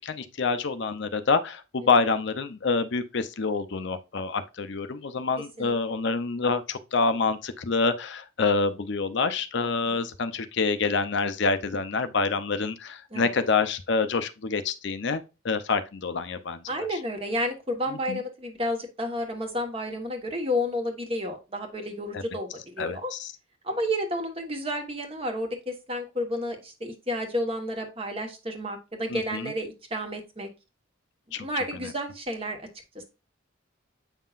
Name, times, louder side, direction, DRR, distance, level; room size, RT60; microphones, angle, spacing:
voice 1, 0.0-16.6 16.9-17.0 17.9-18.2 22.1-22.2 22.8-23.3 29.1-29.5 31.3-31.5 31.8-31.9, left 4 dB, 55° left, 0.6 m, -27 dB
voice 2, 16.7-23.1 23.6-30.5 31.4-32.7 32.9-33.0, equal, 25° right, 1.2 m, -31 dB
8.0 x 5.6 x 2.4 m
head